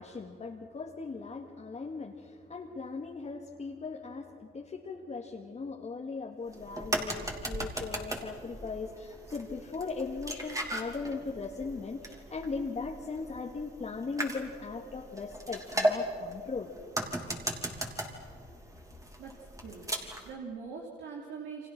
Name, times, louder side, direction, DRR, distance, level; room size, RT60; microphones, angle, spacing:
voice 1, 0.0-16.7, left 4 dB, 35° left, 0 dB, 2.0 m, -38 dB
sound 1, 6.5-20.3, right 1 dB, 15° right, 3.2 m, -37 dB
voice 2, 19.2-19.9 20.2-21.7, right 5 dB, 75° right, -1 dB, 3.1 m, -42 dB
29.5 x 25.0 x 6.1 m, 2.2 s
cardioid pair, 90°, 20 cm